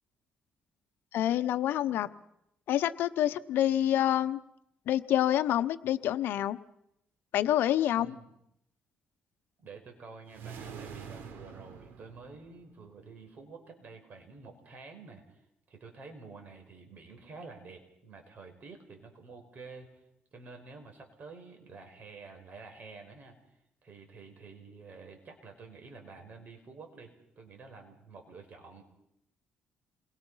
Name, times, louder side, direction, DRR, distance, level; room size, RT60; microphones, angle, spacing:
voice 1, 1.1-2.1 2.7-4.4 4.9-6.6 7.3-8.1, left 12 dB, 80° left, 11 dB, 0.9 m, -27 dB
voice 2, 7.9-8.3 9.6-19.9 20.3-23.4 23.8-28.8, right 4 dB, 50° right, 4 dB, 5.6 m, -49 dB
sound 1, 10.3-12.9, right 7 dB, 75° right, 3.5 m, -45 dB
29.0 x 22.5 x 5.7 m, 0.80 s
cardioid pair, 105°, 4 cm